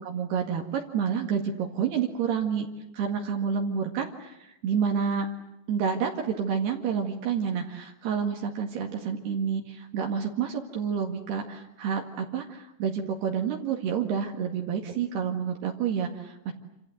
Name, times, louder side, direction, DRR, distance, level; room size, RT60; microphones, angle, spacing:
voice 1, 0.0-2.7 2.9-5.3 5.7-16.5, right 7 dB, 75° right, 2 dB, 3.9 m, -29 dB
28.0 x 27.0 x 7.9 m, 0.87 s
omnidirectional pair, 4.8 m